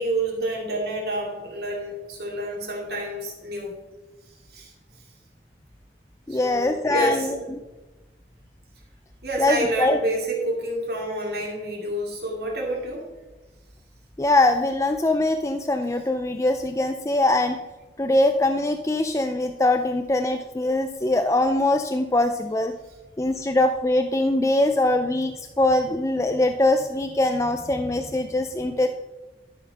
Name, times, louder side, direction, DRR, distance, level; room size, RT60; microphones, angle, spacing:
voice 1, 0.0-3.7 4.5-4.7 6.3-7.5 9.2-13.0, right 1 dB, 65° right, -2 dB, 2.6 m, -28 dB
voice 2, 6.3-7.4 9.4-10.0 14.2-17.6 18.0-22.7 23.2-28.9, left 2 dB, 15° left, 6 dB, 0.4 m, -22 dB
12.5 x 5.5 x 5.7 m, 1.1 s
head